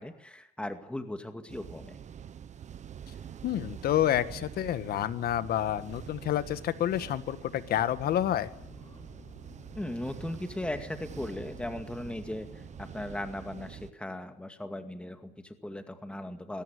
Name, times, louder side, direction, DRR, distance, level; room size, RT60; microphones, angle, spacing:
voice 1, 0.0-2.0 9.8-16.6, left 1 dB, 5° left, 7 dB, 2.2 m, -38 dB
sound 1, 1.5-13.9, right 8 dB, 45° right, 1.2 m, -46 dB
voice 2, 3.4-8.5, left 11 dB, 65° left, 12 dB, 1.7 m, -29 dB
sound 2, 7.7-13.0, left 4 dB, 30° left, 3.4 m, -53 dB
21.5 x 18.0 x 9.8 m, 0.74 s
cardioid pair, 110°, 17 cm